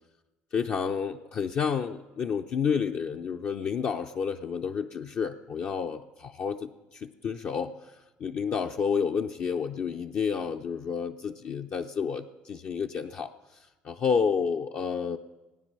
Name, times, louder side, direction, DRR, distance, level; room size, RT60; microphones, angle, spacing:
voice 1, 0.5-15.2, left 6 dB, 50° left, 2 dB, 0.7 m, -30 dB
18.0 x 9.8 x 6.8 m, 1.1 s
hypercardioid pair, 70°, 4 cm